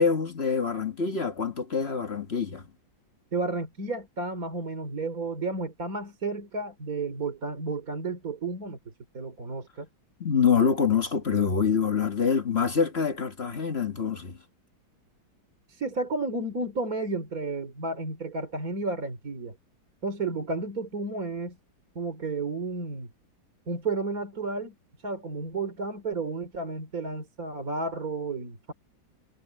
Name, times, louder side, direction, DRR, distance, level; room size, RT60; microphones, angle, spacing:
voice 1, 0.0-2.6 10.2-14.4, left 6 dB, 35° left, 1.5 m, -25 dB
voice 2, 3.3-9.9 15.7-19.5 20.0-21.6 21.9-23.1 23.7-24.7 25.0-28.7, right 3 dB, 45° right, 3.4 m, -32 dB
omnidirectional pair, 2.1 m